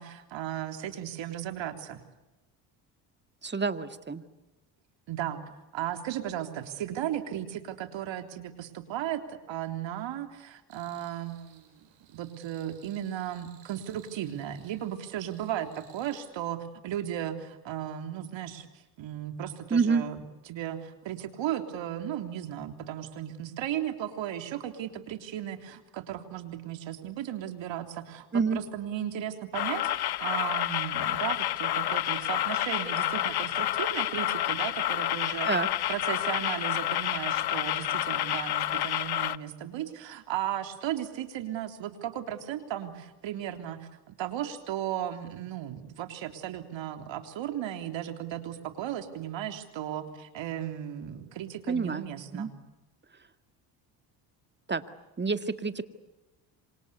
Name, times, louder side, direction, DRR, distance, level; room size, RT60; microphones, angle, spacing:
voice 1, 0.0-2.0 5.1-5.4 5.7-18.7 19.0-20.2 20.5-35.5 35.9-52.5, right 11 dB, 65° right, 7 dB, 3.5 m, -35 dB
voice 2, 3.4-4.2 19.7-20.0 28.3-28.6 35.5-35.7 51.7-52.1 52.3-52.5 54.7-54.8 55.2-55.8, right 5 dB, 20° right, 10 dB, 2.1 m, -27 dB
sound 1, 10.7-16.2, right 10 dB, 80° right, 7.1 m, -59 dB
sound 2, 29.5-39.4, left 13 dB, 50° left, 1.0 m, -29 dB
27.0 x 26.5 x 8.3 m, 1.0 s
supercardioid pair, 70°, 48 cm